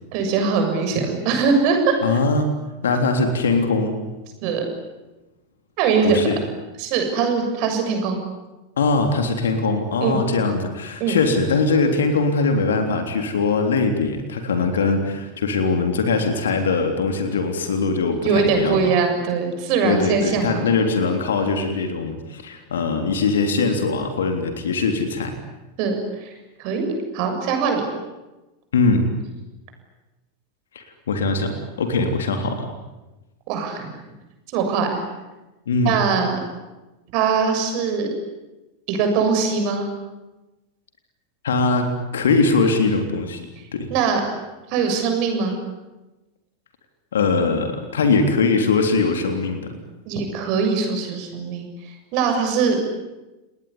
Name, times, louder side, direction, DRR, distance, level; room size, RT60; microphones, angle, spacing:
voice 1, 0.1-2.2 4.4-4.6 5.8-6.2 6.8-8.2 10.0-10.2 11.0-11.2 18.2-20.7 25.8-27.9 33.5-33.9 34.5-35.0 35.8-36.4 37.1-38.1 38.9-39.9 43.9-44.2 44.7-45.6 50.1-52.8, right 5 dB, 45° right, 5 dB, 7.2 m, -22 dB
voice 2, 2.0-2.5 2.8-4.0 6.0-6.4 8.8-18.8 19.8-25.3 28.7-29.0 30.8-32.7 35.7-35.9 41.4-43.9 47.1-49.7, left 4 dB, 70° left, 6 dB, 3.5 m, -21 dB
29.5 x 20.0 x 10.0 m, 1.1 s
figure-of-eight pair, 90°, 0 cm